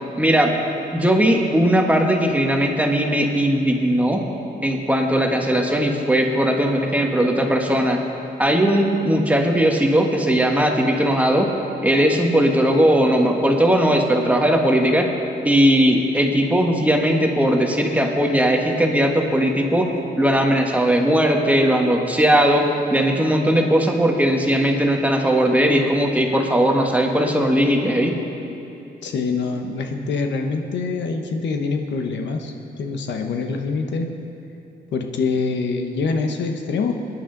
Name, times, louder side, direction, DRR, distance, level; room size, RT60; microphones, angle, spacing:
voice 1, 0.2-0.5 0.9-4.2 4.6-8.0 8.4-11.5 11.8-15.1 15.4-19.9 20.2-28.1, equal, 10° right, 2 dB, 1.4 m, -18 dB
voice 2, 29.0-34.1 34.9-36.9, left 4 dB, 80° left, 4 dB, 1.1 m, -25 dB
22.5 x 10.0 x 3.9 m, 2.9 s
cardioid pair, 115°, 18 cm